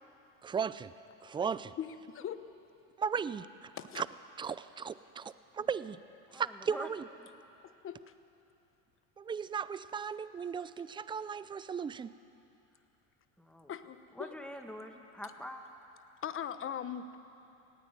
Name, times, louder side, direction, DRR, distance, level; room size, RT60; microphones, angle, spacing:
voice 1, 0.4-0.9 1.2-1.7 3.0-3.7 4.0-4.1 4.4-6.0 6.3-7.0 9.2-12.1, right 6 dB, 15° right, 15 dB, 0.4 m, -36 dB
voice 2, 1.8-2.4 3.8-4.0 7.6-8.1 13.7-14.4 16.2-17.2, left 9 dB, 35° left, 11 dB, 1.1 m, -40 dB
voice 3, 6.3-6.9 13.4-13.7 14.2-15.7, equal, 5° left, 4 dB, 1.8 m, -45 dB
19.0 x 15.5 x 9.3 m, 2.8 s
supercardioid pair, 110°, 38 cm